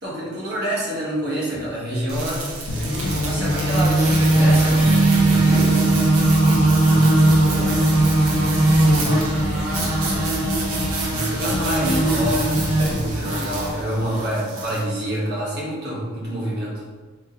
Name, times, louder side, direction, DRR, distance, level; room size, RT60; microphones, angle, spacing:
voice 1, 0.0-4.9 5.1-5.8 11.3-16.8, right 1 dB, 50° right, -6 dB, 1.3 m, -27 dB
sound 1, 2.1-14.8, right 1 dB, 80° right, 0.8 m, -20 dB
sound 2, 2.7-14.2, left 1 dB, 90° left, 0.6 m, -29 dB
Bass guitar, 4.8-11.1, right 6 dB, 25° right, 0.9 m, -25 dB
voice 2, 5.2-5.9 6.5-8.1 9.1-10.6 11.3-11.9 13.9-14.7, left 1 dB, 25° left, -2 dB, 0.4 m, -36 dB
3.6 x 2.9 x 3.7 m, 1.4 s
head